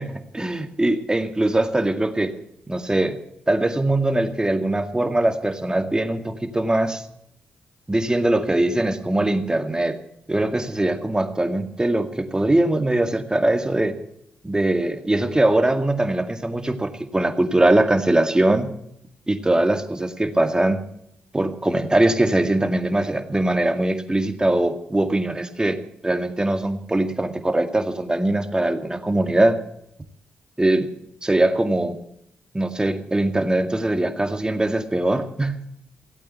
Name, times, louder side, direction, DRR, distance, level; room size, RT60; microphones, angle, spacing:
voice 1, 0.0-2.3 2.7-3.2 3.5-7.0 7.9-10.0 10.3-14.0 14.4-18.7 19.3-20.8 21.3-25.8 26.0-29.6 30.6-30.9 31.2-32.0 32.5-35.6, right 1 dB, 15° right, 7 dB, 2.1 m, -21 dB
16.0 x 8.6 x 9.2 m, 0.75 s
supercardioid pair, 45°, 4 cm